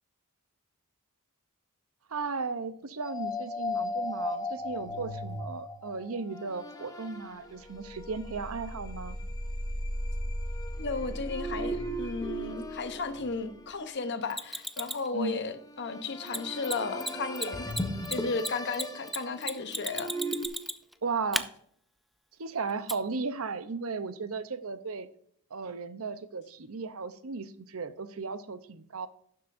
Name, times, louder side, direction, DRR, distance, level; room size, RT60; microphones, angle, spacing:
voice 1, 2.1-9.2 15.1-15.4 21.0-21.5 22.4-25.1 25.5-29.1, right 4 dB, 65° right, 12 dB, 0.7 m, -35 dB
sound 1, 3.0-14.2 15.7-20.5, left 1 dB, 15° left, 0.8 m, -36 dB
voice 2, 10.8-17.7 18.1-20.2, left 4 dB, 50° left, 9 dB, 0.9 m, -34 dB
Mechanisms, 14.3-15.1 16.3-16.4 16.6-16.7 17.0-17.1 17.4-20.9 21.3-21.4 22.9-23.0, equal, ahead, 0.3 m, -33 dB
11.5 x 7.7 x 2.6 m, 0.63 s
head